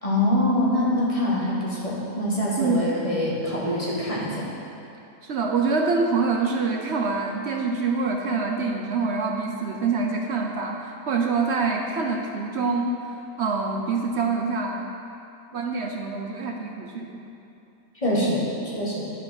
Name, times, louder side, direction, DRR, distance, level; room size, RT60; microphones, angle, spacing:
voice 1, 0.0-4.5 18.0-18.5 18.7-19.1, left 1 dB, 25° left, -6 dB, 1.6 m, -24 dB
voice 2, 2.6-2.9 5.2-13.0 13.4-14.9 15.5-17.2, right 4 dB, 60° right, 2 dB, 0.8 m, -25 dB
11.0 x 5.2 x 5.8 m, 2.7 s
omnidirectional pair, 1.5 m